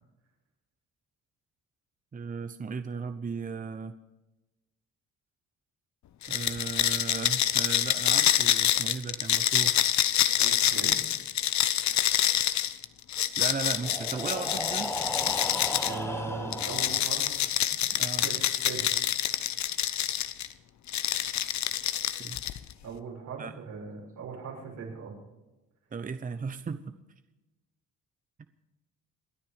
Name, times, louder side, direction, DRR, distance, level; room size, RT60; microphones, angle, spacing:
voice 1, 2.1-3.9 6.3-9.8 12.4-12.7 13.4-15.0 17.9-18.3 22.2-22.4 23.4-23.5 25.9-27.0, right 5 dB, 25° right, 10 dB, 0.9 m, -36 dB
sound 1, 6.2-16.0 16.5-20.5 20.9-22.7, left 11 dB, 65° left, 0.9 m, -27 dB
voice 2, 10.4-11.0 15.8-17.4 17.7-17.8 18.2-18.8 22.8-25.1, right 5 dB, 80° right, -2 dB, 6.7 m, -39 dB
Breathing, 13.7-17.5, left 1 dB, 10° left, 1.3 m, -36 dB
28.0 x 9.7 x 5.1 m, 1.0 s
cardioid pair, 90°, 30 cm